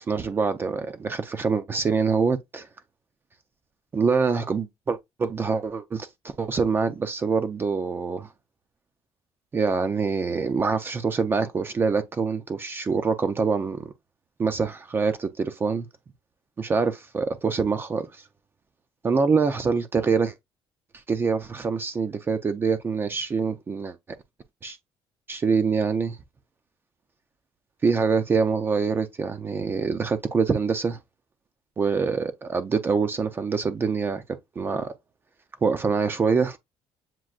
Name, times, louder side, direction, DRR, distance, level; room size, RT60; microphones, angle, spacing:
voice 1, 0.0-2.7 3.9-8.3 9.5-13.9 14.4-15.9 16.6-18.2 19.0-20.3 21.1-24.0 24.6-24.8 25.3-26.2 27.8-31.0 31.8-34.2 34.6-34.9 35.6-36.6, right 5 dB, 20° right, 0.4 m, -25 dB
7.4 x 2.5 x 2.3 m
cardioid pair, 170°, 10 cm